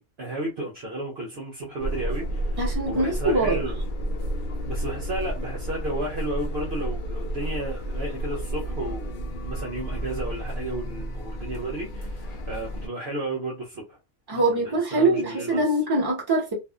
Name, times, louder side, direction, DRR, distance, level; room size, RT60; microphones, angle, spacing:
voice 1, 0.0-2.6 2.9-3.8 4.6-9.2 9.4-14.0 14.3-15.6, right 1 dB, 55° right, 0.9 m, -33 dB
sound 1, 1.8-12.9, right 1 dB, 75° left, 0.4 m, -31 dB
voice 2, 2.6-3.6 14.3-16.5, right 2 dB, 20° right, 1.0 m, -23 dB
2.6 x 2.4 x 2.3 m
omnidirectional pair, 1.5 m